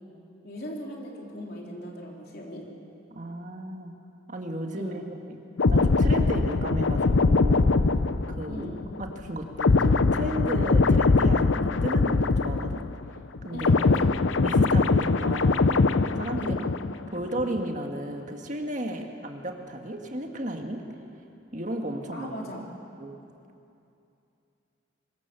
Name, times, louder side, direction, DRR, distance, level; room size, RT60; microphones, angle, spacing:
voice 1, 0.4-2.6 4.8-5.0 8.5-8.8 13.5-14.0 16.4-16.6 22.1-22.6, equal, 55° left, -1 dB, 3.7 m, -38 dB
voice 2, 3.1-3.9 4.3-5.0 5.3-5.4 5.7-8.7 9.0-12.8 13.4-13.7 14.4-16.5 17.1-20.8 21.5-22.3 23.0-23.2, right 1 dB, 40° right, 3 dB, 1.8 m, -34 dB
sound 1, 5.6-13.1 13.3-17.1 17.4-17.6, left 3 dB, 85° left, 0.7 m, -22 dB
24.0 x 22.5 x 7.0 m, 2.7 s
head